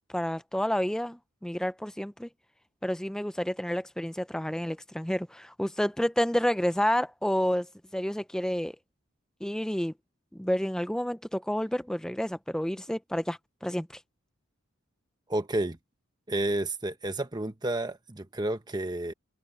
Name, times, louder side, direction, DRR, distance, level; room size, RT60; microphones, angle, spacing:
voice 1, 0.1-2.3 2.8-7.7 7.9-8.7 9.4-9.9 10.3-13.9, equal, 5° left, 0.4 m, -29 dB
voice 2, 15.3-15.8 16.3-19.1, right 1 dB, 20° right, 1.0 m, -30 dB
head